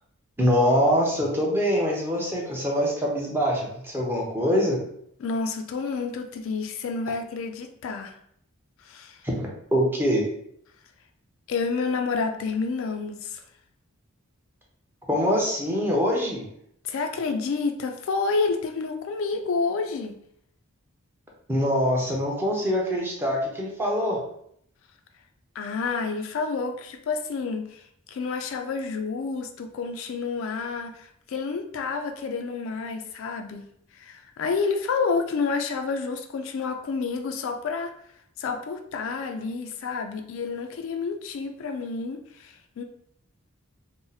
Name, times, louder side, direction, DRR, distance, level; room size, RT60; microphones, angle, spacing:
voice 1, 0.4-4.8 9.2-10.2 15.1-16.4 21.5-24.2, equal, 10° right, -2 dB, 0.6 m, -24 dB
voice 2, 5.2-8.1 8.8-9.2 11.5-13.4 16.8-20.2 25.6-27.8 28.1-33.7 33.9-37.9 38.4-42.8, left 4 dB, 60° left, 6 dB, 0.3 m, -29 dB
2.6 x 2.0 x 3.9 m, 0.70 s
head